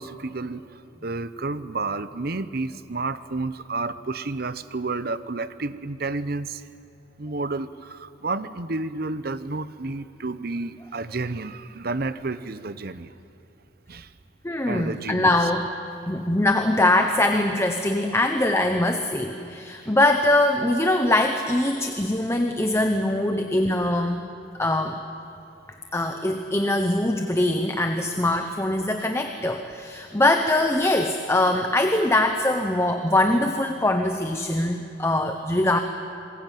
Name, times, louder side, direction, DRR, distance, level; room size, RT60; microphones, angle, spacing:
voice 1, 0.0-6.6 7.2-13.1 13.9-14.1 14.7-15.3 21.7-21.9, right 3 dB, 50° right, 14 dB, 0.9 m, -31 dB
voice 2, 14.4-15.7 16.1-24.2 24.6-25.0 25.9-35.8, left 1 dB, 15° left, 6 dB, 1.0 m, -22 dB
27.0 x 21.0 x 9.3 m, 2.6 s
head